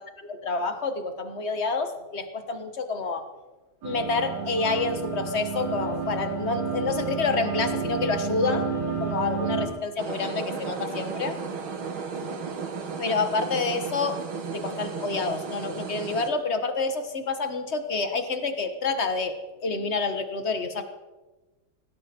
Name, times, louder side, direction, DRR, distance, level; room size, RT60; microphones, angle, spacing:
voice 1, 0.2-3.2 3.8-11.4 13.0-14.2 14.5-19.3 19.6-20.8, left 4 dB, 35° left, 8 dB, 1.4 m, -28 dB
sound 1, 3.8-9.7, right 5 dB, 55° right, 3.8 m, -30 dB
sound 2, 10.0-16.3, right 5 dB, 80° right, 2.4 m, -34 dB
18.5 x 16.5 x 4.4 m, 1.2 s
omnidirectional pair, 2.2 m